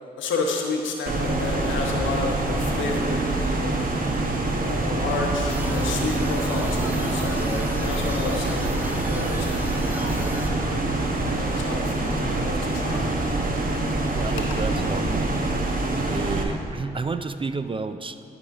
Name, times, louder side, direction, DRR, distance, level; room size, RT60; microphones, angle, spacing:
voice 1, 0.2-3.9 4.6-7.4 7.8-10.9 11.2-13.1 14.3-14.4, left 4 dB, 80° left, 1 dB, 1.0 m, -31 dB
sound 1, 1.1-16.4, right 2 dB, 45° right, 1.0 m, -25 dB
sound 2, 5.5-10.5, equal, 10° right, 0.9 m, -36 dB
voice 2, 14.1-15.4 15.9-18.2, right 4 dB, 25° right, 10 dB, 0.4 m, -31 dB
12.0 x 5.0 x 3.6 m, 2.6 s
supercardioid pair, 45°, 20 cm